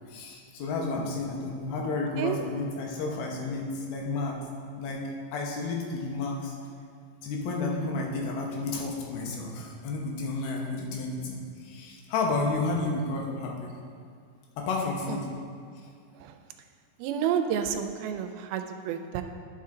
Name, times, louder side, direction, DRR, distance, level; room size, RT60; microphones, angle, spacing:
voice 1, 0.1-4.4 4.8-5.0 5.3-6.5 7.2-13.7 14.6-15.3, left 3 dB, 85° left, 0 dB, 2.9 m, -31 dB
voice 2, 17.0-19.2, right 8 dB, 85° right, 7 dB, 2.4 m, -30 dB
11.0 x 6.1 x 3.8 m, 2.2 s
omnidirectional pair, 4.3 m